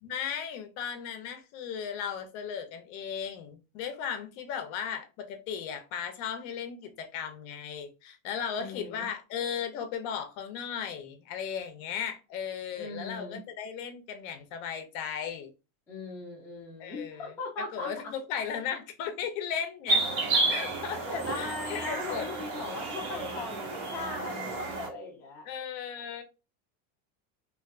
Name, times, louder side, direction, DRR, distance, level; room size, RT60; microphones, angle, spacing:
voice 1, 0.0-15.5 16.8-17.3 17.7-20.0 20.3-21.0 21.3-22.3 25.4-26.2, left 7 dB, 45° left, 0.7 m, -36 dB
voice 2, 8.6-9.1 12.7-13.4 15.9-17.9 20.4-20.6 21.1-25.5, left 3 dB, 5° left, 0.4 m, -39 dB
sound 1, 19.9-24.9, right 3 dB, 65° right, 1.4 m, -31 dB
3.3 x 2.6 x 2.4 m
cardioid pair, 165°, 41 cm